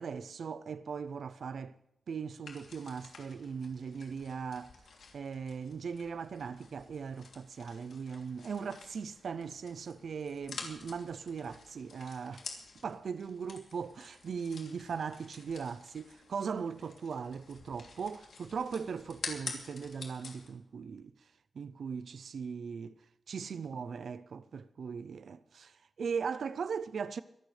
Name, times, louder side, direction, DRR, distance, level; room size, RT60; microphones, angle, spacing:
voice 1, 0.0-1.8 2.1-4.7 5.1-12.5 12.8-21.1 21.5-23.0 23.3-27.2, right 6 dB, 70° right, 0.5 m, -39 dB
sound 1, 2.4-20.5, left 4 dB, 85° left, 3.0 m, -49 dB
24.0 x 13.0 x 3.3 m
wide cardioid pair, 135°, 0 cm